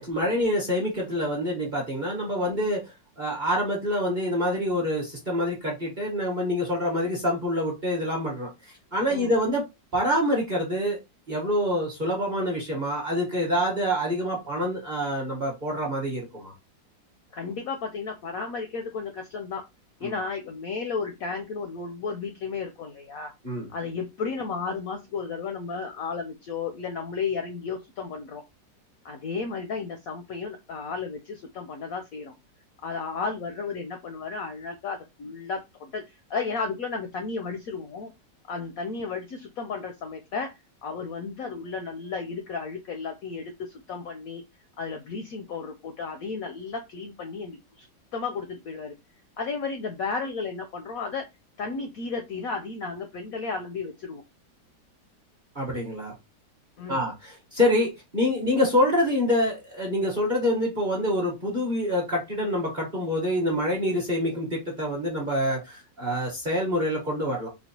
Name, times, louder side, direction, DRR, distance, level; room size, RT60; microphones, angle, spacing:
voice 1, 0.0-2.8 3.2-8.5 8.9-9.7 9.9-11.0 11.3-16.5 20.0-20.1 23.4-23.7 55.5-56.1 56.9-67.5, equal, 35° right, -2 dB, 0.8 m, -26 dB
voice 2, 17.3-19.6 20.0-23.3 23.7-28.4 29.0-32.3 32.8-36.0 36.3-38.1 38.5-44.4 44.8-47.9 48.1-48.9 49.4-51.3 51.6-54.2 56.8-57.1, left 4 dB, 70° left, 6 dB, 0.8 m, -33 dB
4.4 x 2.2 x 2.7 m, 0.22 s
omnidirectional pair, 2.0 m